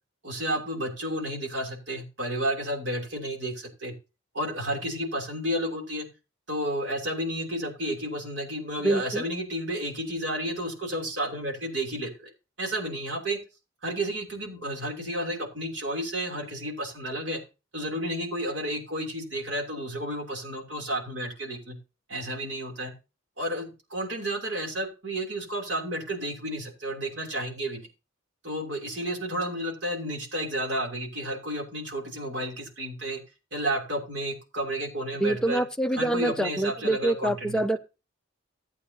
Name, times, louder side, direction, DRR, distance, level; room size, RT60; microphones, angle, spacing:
voice 1, 0.2-3.9 4.3-6.1 6.5-12.3 12.6-13.4 13.8-17.4 17.7-21.8 22.1-22.9 23.4-27.8 28.4-33.2 33.5-35.6 36.0-37.5, right 1 dB, 55° right, 3.0 m, -31 dB
voice 2, 8.8-9.2 35.2-37.8, right 1 dB, 5° left, 0.5 m, -26 dB
15.0 x 8.3 x 2.8 m
head